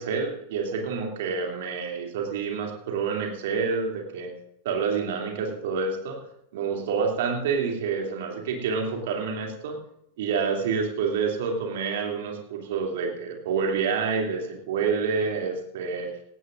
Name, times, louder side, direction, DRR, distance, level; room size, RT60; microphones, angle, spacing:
voice 1, 0.0-4.3 4.6-6.2 6.5-9.8 10.2-16.1, right 5 dB, 55° right, 1 dB, 2.9 m, -28 dB
18.0 x 16.5 x 2.6 m, 0.74 s
figure-of-eight pair, 90°, 0 cm